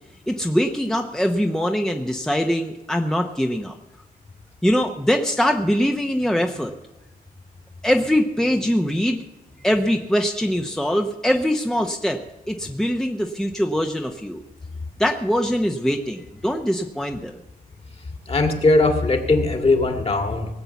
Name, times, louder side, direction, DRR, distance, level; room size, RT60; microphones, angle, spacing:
voice 1, 0.3-3.7 4.6-6.7 7.8-9.2 9.6-12.2 12.5-14.4 15.0-17.4, equal, 5° left, 4 dB, 0.9 m, -22 dB
voice 2, 18.3-20.5, left 2 dB, 40° left, 5 dB, 2.4 m, -19 dB
18.5 x 7.9 x 7.1 m, 1.0 s
cardioid pair, 80°, 15 cm